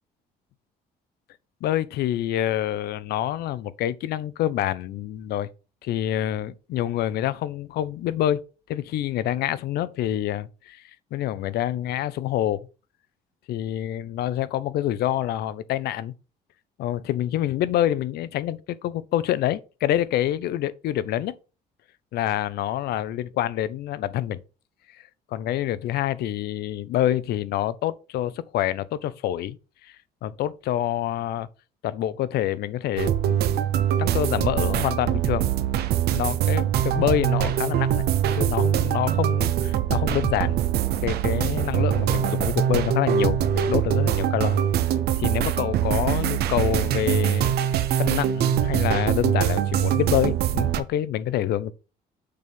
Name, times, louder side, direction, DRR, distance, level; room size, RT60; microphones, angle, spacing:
voice 1, 1.6-5.5 5.8-8.4 8.7-10.8 11.1-12.7 13.5-16.1 16.8-21.3 22.1-24.4 25.3-29.6 29.8-30.0 30.2-31.5 31.8-35.5 36.1-38.0 38.3-40.6 41.0-44.6 45.2-51.7, left 12 dB, 70° left, 0.6 m, -27 dB
sound 1, 33.0-50.8, right 10 dB, 70° right, 0.6 m, -23 dB
6.6 x 3.5 x 5.5 m
cardioid pair, 110°, 17 cm